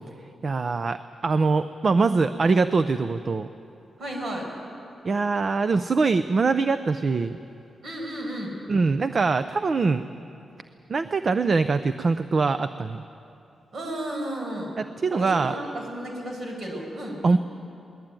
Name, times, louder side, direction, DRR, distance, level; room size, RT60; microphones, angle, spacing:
voice 1, 0.4-3.5 5.0-7.4 8.7-10.0 10.9-13.0 14.8-15.6 17.2-17.4, right 4 dB, 40° right, 11 dB, 0.6 m, -23 dB
voice 2, 4.0-4.5 7.8-8.5 13.7-14.7 15.1-17.2, right 1 dB, 60° right, 0 dB, 5.3 m, -33 dB
20.5 x 19.5 x 9.1 m, 2.8 s
wide cardioid pair, 125°, 0 cm